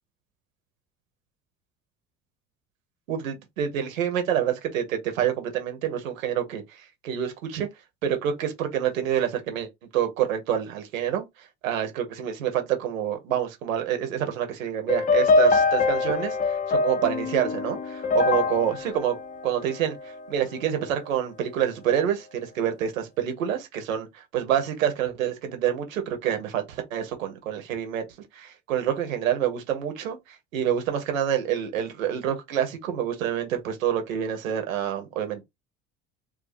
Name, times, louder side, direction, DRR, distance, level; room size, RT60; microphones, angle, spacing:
voice 1, 3.1-7.7 8.0-19.2 19.4-28.0 28.3-35.4, right 10 dB, 80° right, 1.1 m, -27 dB
sound 1, 14.9-20.2, left 3 dB, 20° left, 0.4 m, -24 dB
2.5 x 2.3 x 4.1 m
hypercardioid pair, 65°, 40 cm